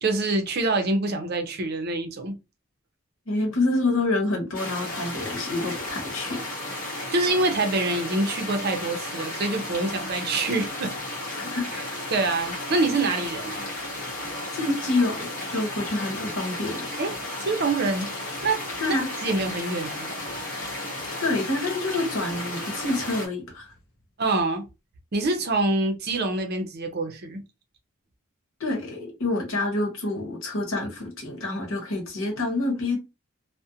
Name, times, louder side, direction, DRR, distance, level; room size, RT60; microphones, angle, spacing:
voice 1, 0.0-2.3 7.1-10.9 12.1-13.6 17.0-17.1 17.4-18.1 18.4-18.6 18.9-19.0 19.2-20.1 20.6-20.7 24.2-24.6 25.1-27.4, right 2 dB, 50° right, 0.6 m, -25 dB
voice 2, 3.3-6.4 11.4-12.0 14.5-16.9 18.8-19.1 21.2-23.7 28.6-33.0, left 2 dB, 75° left, 0.9 m, -27 dB
sound 1, 4.5-23.3, left 1 dB, 40° left, 1.0 m, -34 dB
2.4 x 2.1 x 2.7 m
head